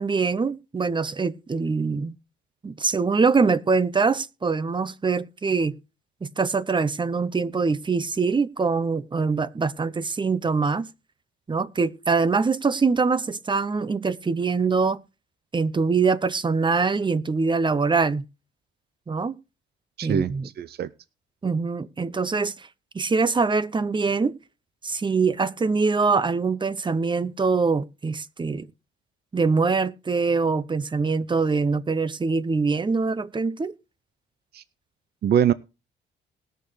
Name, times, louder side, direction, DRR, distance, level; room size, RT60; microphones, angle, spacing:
voice 1, 0.0-2.2 2.6-5.8 6.2-10.9 11.5-15.0 15.5-18.2 19.1-19.3 20.0-20.5 21.4-22.7 22.9-24.4 24.8-28.7 29.3-33.7, right 4 dB, 25° right, 0.8 m, -23 dB
voice 2, 20.0-20.9 34.5-34.6 35.2-35.5, right 9 dB, 55° right, 0.6 m, -23 dB
20.0 x 6.7 x 3.3 m
cardioid pair, 90°, 20 cm